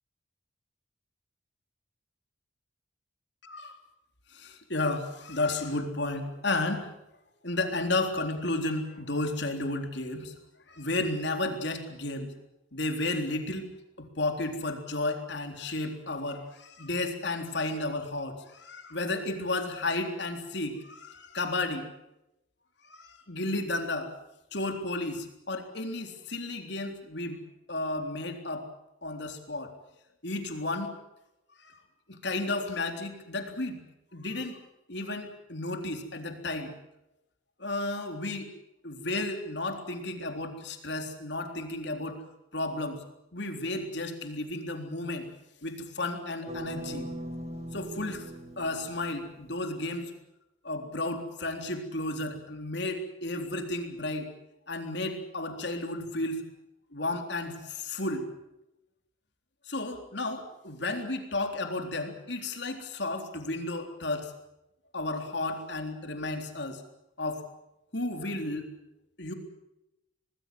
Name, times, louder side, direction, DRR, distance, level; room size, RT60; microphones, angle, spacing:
voice 1, 3.4-3.8 4.3-6.9 7.4-10.3 10.7-12.3 12.7-13.7 14.0-21.9 22.8-24.1 24.5-27.4 27.7-28.7 29.0-29.7 30.2-30.9 31.6-31.8 32.1-33.8 34.1-34.6 34.9-36.7 37.6-38.5 38.8-42.2 42.5-43.0 43.3-45.3 45.6-47.1 47.7-48.2 48.6-50.1 50.6-54.3 54.7-56.4 56.9-58.3 59.6-64.3 64.9-66.8 67.2-67.4 67.9-68.7 69.2-69.3, left 2 dB, 55° left, 5 dB, 3.7 m, -33 dB
sound 1, 46.5-49.5, right 1 dB, 30° right, 2.1 m, -40 dB
26.0 x 19.5 x 7.8 m, 0.89 s
head